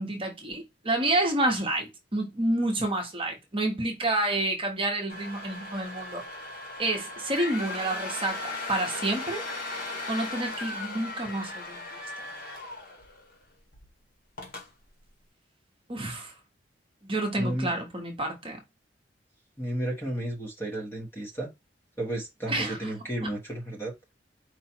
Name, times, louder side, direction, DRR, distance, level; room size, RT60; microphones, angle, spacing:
voice 1, 0.0-6.2 6.8-9.4 10.1-11.8 15.9-16.3 17.0-18.6 22.5-22.9, right 1 dB, 30° right, 1.0 m, -29 dB
sound 1, 5.1-13.4 13.7-13.9 14.4-14.7, left 2 dB, 55° left, 1.4 m, -37 dB
voice 2, 17.4-17.8 19.6-21.5 22.0-23.9, right 1 dB, 15° left, 1.2 m, -33 dB
4.8 x 2.4 x 4.4 m
head